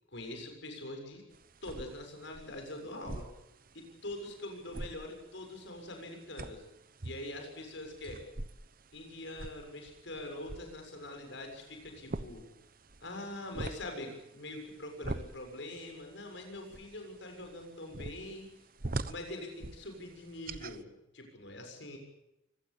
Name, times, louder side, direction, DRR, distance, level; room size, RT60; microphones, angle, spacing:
voice 1, 0.1-1.2 1.6-3.3 3.7-6.6 7.0-8.2 8.9-12.5 13.0-18.5 19.0-22.0, left 1 dB, 65° left, 4 dB, 7.0 m, -44 dB
sound 1, 1.3-20.8, right 2 dB, 45° right, 1.0 m, -45 dB
25.0 x 18.5 x 8.7 m, 0.90 s
head